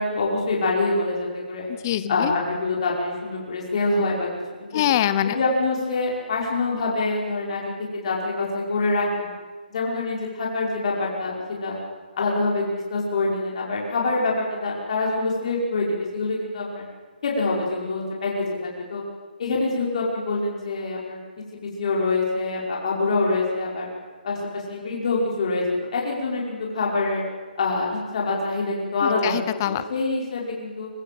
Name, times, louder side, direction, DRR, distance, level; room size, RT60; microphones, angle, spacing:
voice 1, 0.0-1.7 2.1-4.3 4.6-4.8 5.2-9.3 9.7-11.3 11.6-11.8 12.2-16.8 17.2-19.0 19.4-21.2 21.8-23.9 24.2-25.6 25.9-27.2 27.6-29.3 29.7-30.9, left 3 dB, 40° left, -3 dB, 5.4 m, -25 dB
voice 2, 1.7-2.3 4.7-5.4 29.0-29.8, left 12 dB, 20° left, 13 dB, 0.7 m, -24 dB
25.0 x 15.5 x 7.7 m, 1.4 s
hypercardioid pair, 170°, 5 cm